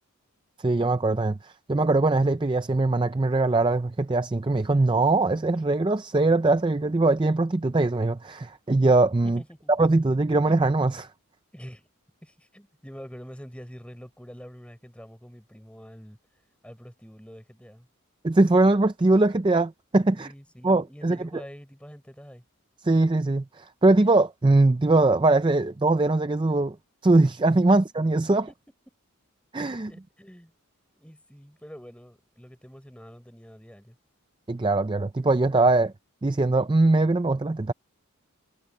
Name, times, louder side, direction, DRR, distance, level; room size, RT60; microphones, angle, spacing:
voice 1, 0.6-9.4 9.8-11.1 18.2-20.3 20.6-21.2 22.8-26.8 27.0-28.4 29.5-29.9 34.5-35.9 36.2-37.7, right 2 dB, 20° right, 0.4 m, -21 dB
voice 2, 9.2-9.7 11.5-11.9 12.2-16.2 16.6-17.9 20.1-22.4 27.7-27.8 28.5-28.6 29.9-30.5 30.9-34.0, equal, 5° left, 6.5 m, -45 dB
head